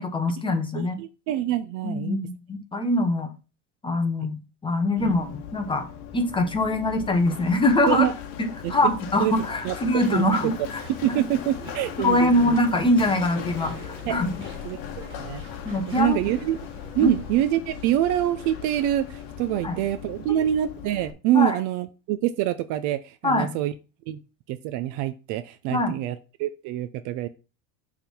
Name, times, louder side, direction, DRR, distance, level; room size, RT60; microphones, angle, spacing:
voice 1, 0.0-1.0 1.8-3.3 3.8-5.9 6.1-8.1 8.4-10.8 12.0-14.3 15.6-16.2 17.0-17.2 19.6-19.8 21.3-21.5 23.2-23.5 25.7-25.9, left 2 dB, 10° left, 6 dB, 0.9 m, -23 dB
voice 2, 0.7-2.2 5.0-5.1 7.9-8.1 8.6-8.9 9.2-9.3 9.6-9.7 10.1-10.3 11.0-12.6 14.0-14.2 14.6-15.4 15.9-16.6 16.9-23.7 24.1-24.2 24.5-27.3, right 12 dB, 45° right, 12 dB, 0.5 m, -26 dB
Run, 5.0-21.1, left 8 dB, 50° left, 1.3 m, -38 dB
Walk footsteps / Chatter / Squeak, 9.8-17.5, right 1 dB, 15° right, 3.2 m, -45 dB
6.8 x 3.6 x 5.9 m, 0.31 s
supercardioid pair, 150°, 43 cm